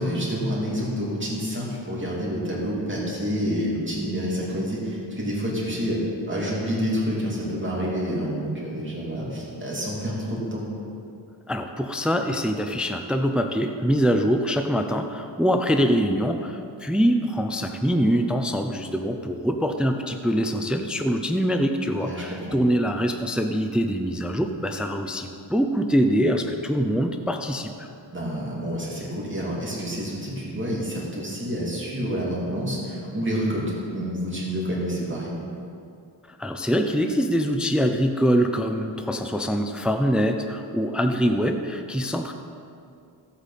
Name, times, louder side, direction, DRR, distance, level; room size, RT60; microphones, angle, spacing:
voice 1, 0.0-10.6 22.0-22.4 28.1-35.3, equal, 25° right, -5 dB, 2.8 m, -28 dB
voice 2, 11.5-27.9 36.3-42.3, equal, ahead, 6 dB, 0.5 m, -24 dB
15.0 x 8.2 x 4.2 m, 2.5 s
wide cardioid pair, 105°, 46 cm